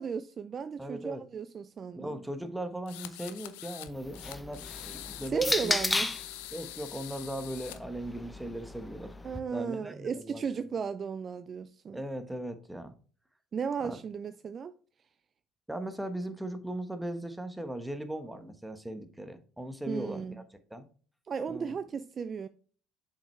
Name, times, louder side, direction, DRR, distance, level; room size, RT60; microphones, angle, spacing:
voice 1, 0.0-2.2 5.3-6.1 9.2-12.0 13.5-14.7 19.9-20.4 21.3-22.5, right 6 dB, 40° right, 0.4 m, -35 dB
voice 2, 0.8-1.2 2.0-5.7 6.5-9.1 9.5-10.4 11.9-12.9 13.8-14.0 15.7-20.3 20.7-20.8 21.5-21.7, right 1 dB, 5° right, 1.2 m, -38 dB
sound 1, 2.9-3.9 4.1-7.8, left 15 dB, 75° left, 0.6 m, -44 dB
sound 2, 3.9-6.3 7.3-9.4, left 2 dB, 15° left, 0.8 m, -34 dB
7.2 x 5.3 x 3.2 m
hypercardioid pair, 65°, 0 cm